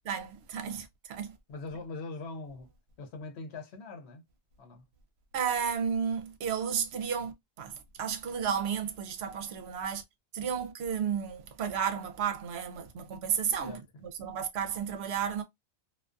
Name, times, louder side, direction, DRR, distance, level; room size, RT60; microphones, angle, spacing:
voice 1, 0.1-1.4 5.3-10.0 10.3-15.4, right 7 dB, 70° right, 0.8 m, -33 dB
voice 2, 1.5-2.7 3.0-4.2 4.6-4.8 13.6-13.8, left 3 dB, 75° left, 0.9 m, -42 dB
2.3 x 2.3 x 2.4 m
omnidirectional pair, 1.1 m